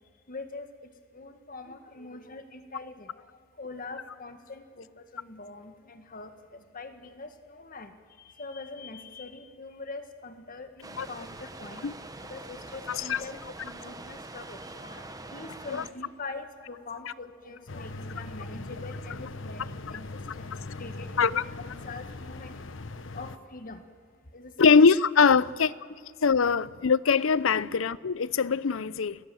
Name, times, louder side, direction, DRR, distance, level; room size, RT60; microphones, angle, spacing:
voice 1, 0.3-0.7 1.1-3.3 3.6-7.9 8.2-11.9 12.2-22.6 23.1-23.8 24.3-24.8 25.3-25.4 25.9-26.0 27.5-27.6, left 3 dB, 45° left, 1.8 m, -43 dB
sound 1, 10.8-15.9, right 2 dB, 20° right, 1.1 m, -44 dB
voice 2, 12.9-13.2 15.7-15.8 21.2-21.4 24.6-25.7 26.2-29.2, left 5 dB, 85° left, 0.6 m, -22 dB
sound 2, 17.7-23.4, left 2 dB, 70° left, 1.2 m, -40 dB
29.5 x 19.5 x 7.8 m
head